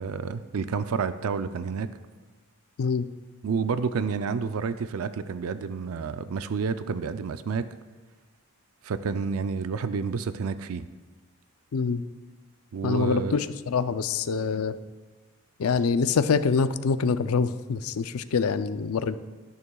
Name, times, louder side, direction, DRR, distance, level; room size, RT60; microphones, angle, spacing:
voice 1, 0.0-1.9 3.4-7.7 8.8-10.9 12.7-13.3, right 5 dB, 85° right, 11 dB, 0.4 m, -29 dB
voice 2, 11.7-12.0 12.8-14.8 15.6-19.2, left 5 dB, 85° left, 13 dB, 0.5 m, -25 dB
12.5 x 11.0 x 2.3 m, 1.3 s
head